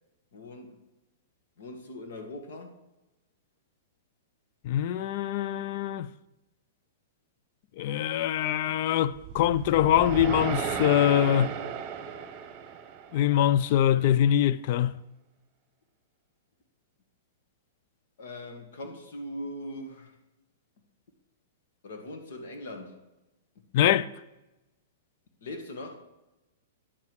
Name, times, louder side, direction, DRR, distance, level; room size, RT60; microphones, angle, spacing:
voice 1, 0.3-0.8 1.6-2.7 18.2-20.2 21.8-23.0 25.4-25.9, left 1 dB, 70° left, 1.8 m, -40 dB
voice 2, 4.6-6.1 7.8-11.5 13.1-15.0 23.7-24.1, left 11 dB, 45° left, 0.3 m, -24 dB
sound 1, 9.1-13.4, right 8 dB, 30° right, 1.0 m, -34 dB
9.7 x 7.1 x 4.7 m
hypercardioid pair, 155°, 0 cm